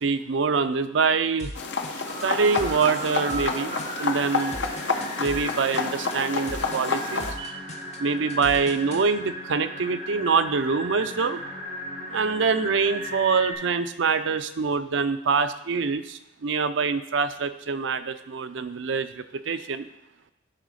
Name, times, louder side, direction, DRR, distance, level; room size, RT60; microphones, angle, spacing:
voice 1, 0.0-1.5 2.2-4.6 5.2-7.6 8.0-11.4 12.1-19.9, right 5 dB, 80° right, 10 dB, 0.5 m, -25 dB
sound 1, 1.4-9.0, left 1 dB, 35° left, 0.9 m, -39 dB
sound 2, 1.5-7.3, left 4 dB, 70° left, 0.8 m, -29 dB
sound 3, 2.1-13.5, equal, 50° right, 3.0 m, -36 dB
10.5 x 4.1 x 6.4 m, 0.90 s
head